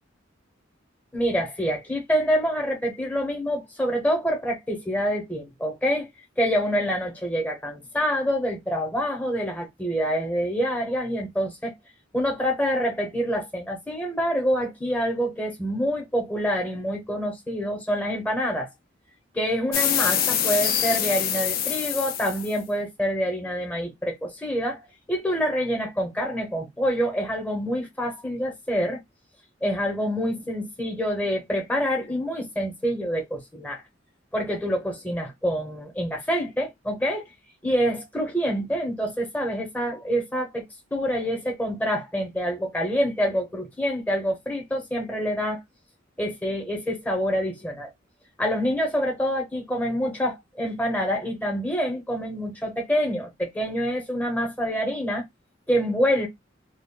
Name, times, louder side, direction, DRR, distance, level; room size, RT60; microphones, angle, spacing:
voice 1, 1.1-6.1 6.4-11.7 12.1-18.7 19.3-24.8 25.1-29.0 29.6-33.8 34.3-37.2 37.6-40.6 40.9-45.6 46.2-47.9 48.4-55.2 55.7-56.3, equal, 10° left, 0.7 m, -26 dB
sound 1, 19.7-22.6, left 9 dB, 50° left, 0.4 m, -25 dB
2.2 x 2.0 x 3.6 m
head